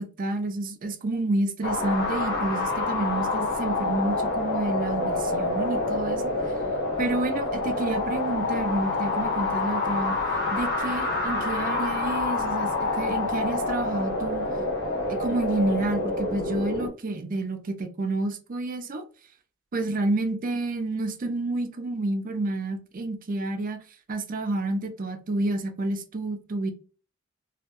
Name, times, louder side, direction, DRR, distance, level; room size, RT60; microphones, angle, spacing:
voice 1, 0.0-6.5 7.0-10.2 10.5-14.4 15.1-19.0 19.7-23.8 24.1-26.7, right 2 dB, 40° right, 0.5 m, -29 dB
sound 1, 1.6-16.9, left 2 dB, 50° left, 0.7 m, -27 dB
2.3 x 2.2 x 2.8 m
head